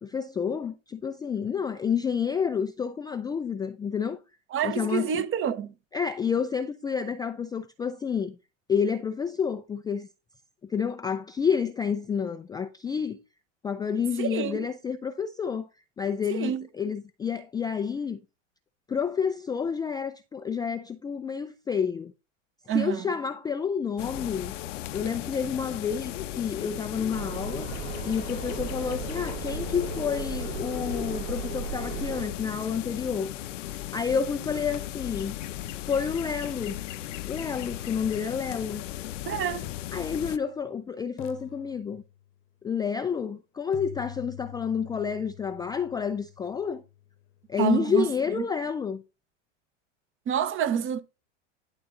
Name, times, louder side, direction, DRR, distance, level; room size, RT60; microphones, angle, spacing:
voice 1, 0.0-4.2 4.6-5.3 5.9-8.4 8.7-10.1 10.6-13.2 13.6-15.7 16.0-18.2 18.9-22.1 22.7-24.5 24.9-27.7 28.1-33.3 33.9-35.3 35.9-36.8 37.3-38.8 39.9-42.0 42.6-46.8 47.5-49.0, left 6 dB, 10° left, 0.3 m, -29 dB
voice 2, 4.5-5.7 14.2-14.7 16.3-16.7 22.7-23.1 39.3-39.7 47.6-48.1 48.4-48.5 50.3-51.0, right 9 dB, 35° right, 1.0 m, -27 dB
sound 1, 24.0-40.4, left 13 dB, 75° left, 0.8 m, -36 dB
sound 2, 27.1-32.3, right 6 dB, 75° right, 3.0 m, -36 dB
sound 3, 38.7-38.8 39.6-40.8 41.2-42.4 43.7-47.6, left 12 dB, 35° left, 0.9 m, -46 dB
11.0 x 3.8 x 3.8 m
hypercardioid pair, 100°, 37 cm